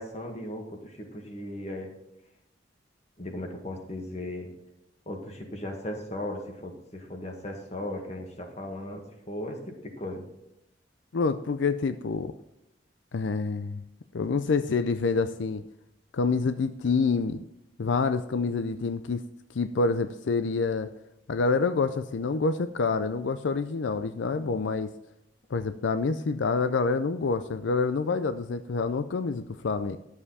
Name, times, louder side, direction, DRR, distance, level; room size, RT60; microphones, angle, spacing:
voice 1, 0.0-1.9 3.2-4.5 5.1-10.3, left 1 dB, 35° left, 3 dB, 1.8 m, -37 dB
voice 2, 11.1-12.3 13.1-13.8 14.1-15.6 16.1-17.4 17.8-19.2 19.5-20.9 21.3-24.9 25.5-30.0, left 4 dB, 85° left, 11 dB, 0.5 m, -27 dB
11.0 x 7.2 x 4.2 m, 0.86 s
head